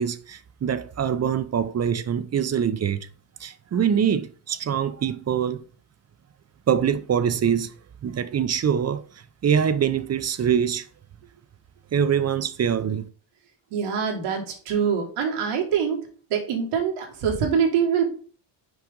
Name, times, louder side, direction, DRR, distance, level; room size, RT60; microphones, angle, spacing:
voice 1, 0.0-3.1 3.4-5.6 6.7-7.7 8.0-10.9 11.9-13.0, right 8 dB, 35° right, 0.5 m, -24 dB
voice 2, 13.7-18.2, right 7 dB, 90° right, 2.0 m, -24 dB
6.1 x 4.9 x 3.7 m
cardioid pair, 95°, 50 cm